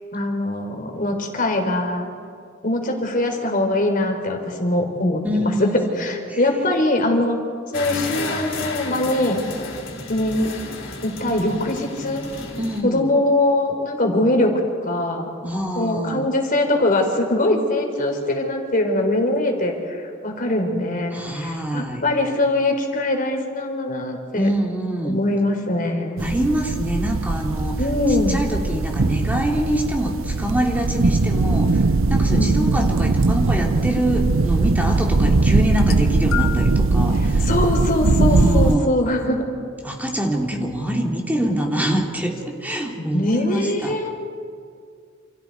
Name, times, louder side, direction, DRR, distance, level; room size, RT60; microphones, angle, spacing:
voice 1, 0.1-2.1 2.6-5.7 6.0-7.4 7.7-9.4 10.1-10.5 11.0-12.2 12.8-14.5 14.8-24.5 25.0-26.2 27.8-28.4 32.3-32.5 37.5-39.5 40.6-40.7 43.0-44.1, left 1 dB, 45° left, 3 dB, 3.8 m, -22 dB
voice 2, 5.2-6.4 12.6-13.1 15.4-16.2 21.1-22.0 24.3-25.2 26.2-27.7 28.1-31.8 32.1-37.5 38.3-39.0 39.8-42.3 42.6-44.0, right 1 dB, 10° right, 0 dB, 2.8 m, -25 dB
sound 1, 7.7-12.8, left 3 dB, 65° left, 4.4 m, -32 dB
sound 2, 26.2-38.8, right 3 dB, 75° right, 0.7 m, -20 dB
sound 3, 35.7-36.8 37.7-37.9 39.0-39.1, left 13 dB, 85° left, 1.5 m, -30 dB
28.5 x 28.5 x 4.7 m, 2.3 s
head